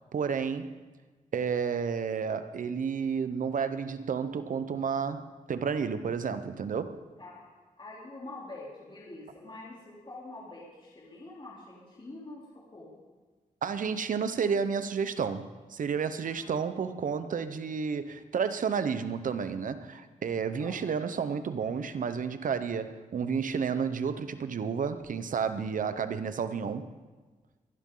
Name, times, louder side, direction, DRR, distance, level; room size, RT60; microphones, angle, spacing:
voice 1, 0.1-0.7 1.3-7.0 13.6-26.9, right 6 dB, 70° right, 11 dB, 1.0 m, -31 dB
voice 2, 7.8-12.4 12.7-12.9 16.2-16.8 20.6-20.8, left 2 dB, 35° left, -6 dB, 3.6 m, -45 dB
23.0 x 11.5 x 3.9 m, 1.3 s
cardioid pair, 70°, 14 cm